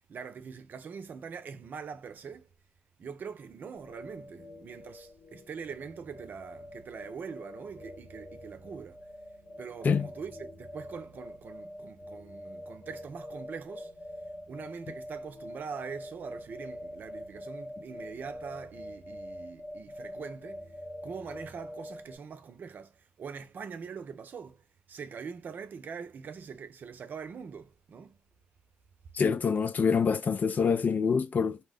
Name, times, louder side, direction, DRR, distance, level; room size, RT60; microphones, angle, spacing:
voice 1, 0.1-2.5 3.0-9.0 9.6-13.9 14.5-20.6 21.0-22.9 23.2-24.6 24.9-28.2, right 6 dB, 60° right, 0.5 m, -43 dB
sound 1, 3.7-22.2, equal, 70° left, 1.3 m, -45 dB
voice 2, 29.1-31.6, left 5 dB, 50° left, 0.5 m, -26 dB
2.7 x 2.1 x 3.4 m
hypercardioid pair, 45°, 4 cm